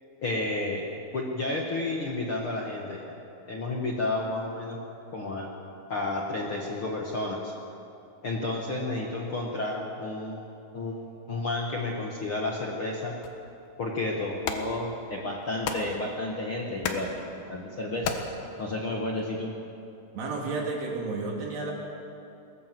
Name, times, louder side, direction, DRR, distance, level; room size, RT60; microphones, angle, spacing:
voice 1, 0.2-0.9 1.1-3.1 3.5-4.8 5.1-5.5 5.9-7.5 8.2-10.4 10.7-13.1 13.8-17.1 17.5-18.1 18.6-19.5, left 2 dB, 50° left, -1 dB, 1.6 m, -31 dB
sound 1, 13.2-19.3, left 5 dB, 70° left, 3.1 m, -38 dB
voice 2, 20.1-21.7, right 3 dB, 80° right, -1 dB, 5.1 m, -31 dB
21.5 x 19.0 x 7.7 m, 2.8 s
omnidirectional pair, 4.6 m